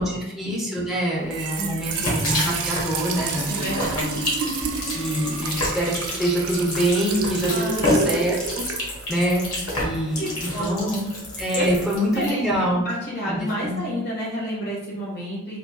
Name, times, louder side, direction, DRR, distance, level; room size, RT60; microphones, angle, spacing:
voice 1, 0.0-3.6 3.9-4.2 4.9-5.9 6.2-8.6 9.1-9.4 9.8-11.0 11.4-12.8 13.2-13.8, right 1 dB, ahead, -5 dB, 0.7 m, -25 dB
Trickle dribble / Fill (with liquid), 1.2-9.9, right 5 dB, 90° right, 0.4 m, -30 dB
voice 2, 1.6-2.1 3.5-4.1 7.5-8.3 10.2-11.1 11.5-15.6, equal, 50° left, -5 dB, 1.4 m, -30 dB
sound 1, 1.8-12.3, left 1 dB, 80° left, 1.2 m, -29 dB
3.5 x 2.7 x 2.2 m, 0.98 s
head